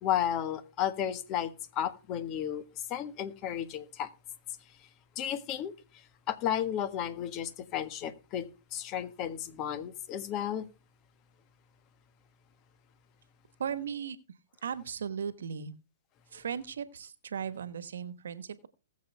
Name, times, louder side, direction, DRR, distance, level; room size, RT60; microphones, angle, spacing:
voice 1, 0.0-2.6 2.9-4.1 5.2-5.7 6.3-10.6, left 10 dB, 35° left, 1.5 m, -33 dB
voice 2, 13.6-14.2 14.6-15.7 16.3-18.7, right 7 dB, 75° right, 1.4 m, -37 dB
20.0 x 7.4 x 3.5 m
hypercardioid pair, 125°, 0 cm